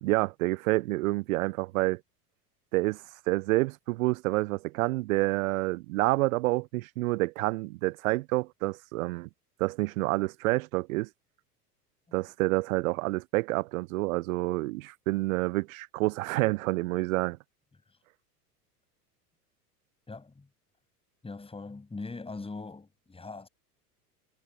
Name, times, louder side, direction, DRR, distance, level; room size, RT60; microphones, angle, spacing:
voice 1, 0.0-2.0 2.7-9.3 9.6-11.1 12.1-17.4, right 21 dB, 55° right, 0.9 m, -28 dB
voice 2, 20.1-20.5 21.2-23.5, left 3 dB, 10° left, 7.7 m, -41 dB
hypercardioid pair, 90°, 48 cm